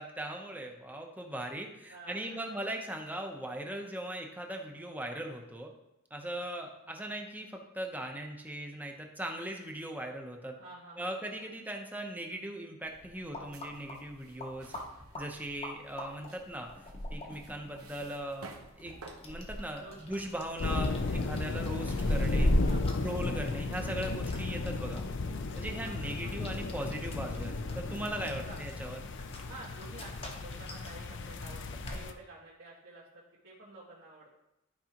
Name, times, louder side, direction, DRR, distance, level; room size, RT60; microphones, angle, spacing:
voice 1, 0.0-5.7 6.1-10.6 11.0-14.7 15.1-16.7 17.1-18.5 18.8-18.9 19.2-22.5 23.0-25.0 25.5-29.0, right 1 dB, 10° right, 2 dB, 0.7 m, -39 dB
voice 2, 1.9-2.6 10.6-11.5 19.8-20.0 22.5-23.2 25.8-26.3 28.3-28.6 29.4-34.3, right 2 dB, 60° right, -7 dB, 1.6 m, -51 dB
sound 1, 12.9-32.0, equal, 30° left, 0.8 m, -39 dB
sound 2, 13.5-23.4, right 3 dB, 85° right, 1.0 m, -55 dB
sound 3, 20.6-32.1, left 3 dB, 60° left, 0.5 m, -35 dB
12.0 x 4.7 x 3.0 m, 0.89 s
head